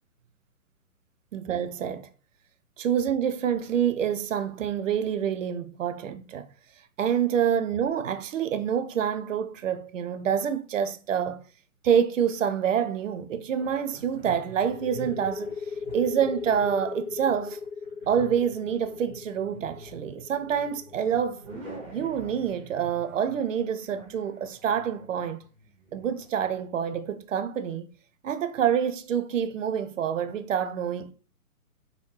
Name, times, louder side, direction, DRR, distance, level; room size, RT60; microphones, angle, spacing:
voice 1, 1.3-2.1 2.8-6.5 7.0-11.4 11.8-15.5 15.9-17.6 18.1-21.4 21.9-25.4 25.9-27.9 28.2-31.1, right 8 dB, 60° right, 0.5 m, -27 dB
sound 1, 13.6-26.3, right 2 dB, 25° right, 1.9 m, -46 dB
sound 2, 14.6-22.0, left 5 dB, 80° left, 0.6 m, -37 dB
3.9 x 2.8 x 3.1 m
figure-of-eight pair, 135°, 45 cm